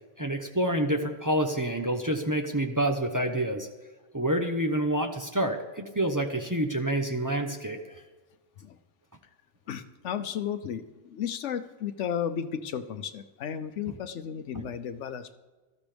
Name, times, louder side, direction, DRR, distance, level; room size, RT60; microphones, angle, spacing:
voice 1, 0.2-3.7 4.1-7.8 13.9-14.0 14.5-14.7, right 1 dB, 20° right, 4 dB, 0.8 m, -28 dB
voice 2, 9.7-15.3, left 8 dB, 85° left, 10 dB, 1.0 m, -34 dB
18.5 x 13.0 x 3.4 m, 1.3 s
omnidirectional pair, 1.2 m